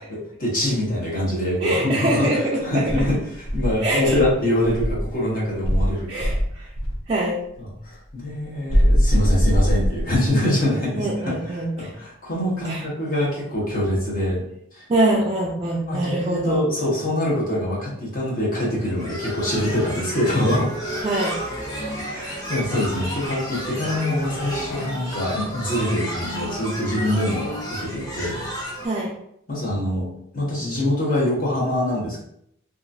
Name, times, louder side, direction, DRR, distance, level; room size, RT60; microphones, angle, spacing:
voice 1, 0.0-2.3 2.6-3.2 3.5-6.4 7.8-11.3 11.8-14.4 14.7-14.8 15.9-20.7 22.0-28.4 29.5-30.1 30.3-32.2, left 1 dB, 45° left, -6 dB, 1.0 m, -24 dB
voice 2, 1.6-3.1 3.8-4.2 6.1-6.7 7.1-7.4 11.0-11.9 12.6-12.8 14.9-16.6 21.0-21.4 28.8-29.1, right 1 dB, 30° right, -4 dB, 0.3 m, -24 dB
Insect, 2.9-5.1 5.6-7.0 8.7-10.4, equal, 90° left, 0.6 m, -21 dB
sound 1, 18.8-28.9, equal, 15° left, 0.8 m, -31 dB
2.8 x 2.4 x 2.5 m, 0.73 s
head